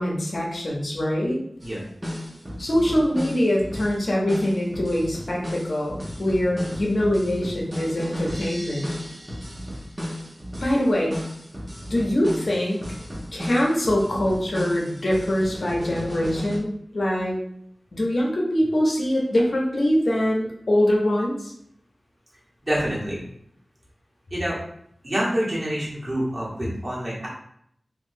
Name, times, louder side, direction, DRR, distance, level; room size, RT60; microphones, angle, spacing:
voice 1, 0.0-1.4 2.6-8.9 10.6-11.2 11.9-12.8 13.3-17.4 17.9-21.5, left 1 dB, 70° left, -2 dB, 0.7 m, -23 dB
sound 1, 1.6-1.7 2.0-16.6, equal, 25° right, 0.9 m, -34 dB
voice 2, 22.6-23.2 24.3-24.6 25.0-27.3, equal, 45° right, -6 dB, 1.3 m, -27 dB
3.0 x 2.6 x 2.6 m, 0.69 s
cardioid pair, 45°, 0 cm